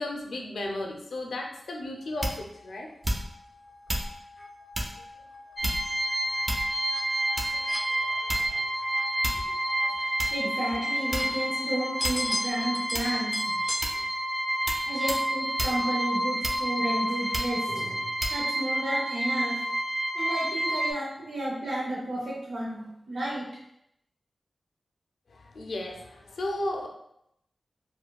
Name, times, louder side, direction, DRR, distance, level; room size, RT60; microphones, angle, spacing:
voice 1, 0.0-2.9 5.0-5.1 7.3-9.0 9.3-9.6 9.8-10.0 25.3-26.9, left 1 dB, 85° left, 1 dB, 0.5 m, -36 dB
sound 1, 2.2-13.9, left 1 dB, 10° left, 0.5 m, -40 dB
sound 2, 2.2-2.6 3.0-3.5 3.9-4.1 4.7-5.0 5.6-6.0 6.5-6.9 7.4-7.7 8.3-8.7 9.2-9.5 10.2-10.3 11.1-11.5 12.0-12.3 12.9-13.3 13.8-14.1 14.7-14.8 15.1-15.3 15.6-15.8 16.4-16.8 17.3-17.6 18.2-18.4, right 1 dB, 35° right, 0.7 m, -31 dB
sound 3, 5.6-20.9, right 1 dB, 10° right, 1.1 m, -29 dB
voice 2, 10.0-13.6 13.9-14.0 14.8-19.7 20.1-23.5, right 1 dB, 80° right, -5 dB, 0.6 m, -32 dB
4.4 x 2.2 x 2.2 m, 0.78 s
cardioid pair, 45°, 0 cm